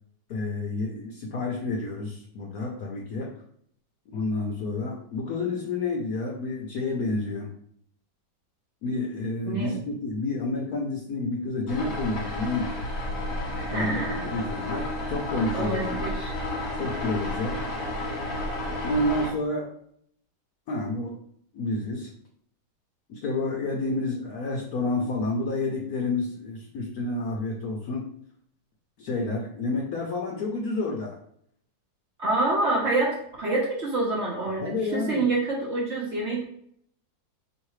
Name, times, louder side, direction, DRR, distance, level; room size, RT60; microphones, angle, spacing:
voice 1, 0.3-3.3 4.1-7.5 8.8-12.8 13.7-14.0 14.3-16.0 16.7-17.6 18.8-19.7 20.7-21.1 21.5-22.1 23.1-28.1 29.0-31.2 34.6-35.3, left 2 dB, 65° left, 0 dB, 0.9 m, -29 dB
sound 1, 11.7-19.3, left 1 dB, 50° left, 1.5 m, -31 dB
voice 2, 13.6-14.2 15.5-16.4 32.2-36.4, right 2 dB, 50° right, -4 dB, 0.9 m, -27 dB
4.6 x 3.2 x 3.1 m, 0.67 s
omnidirectional pair, 2.0 m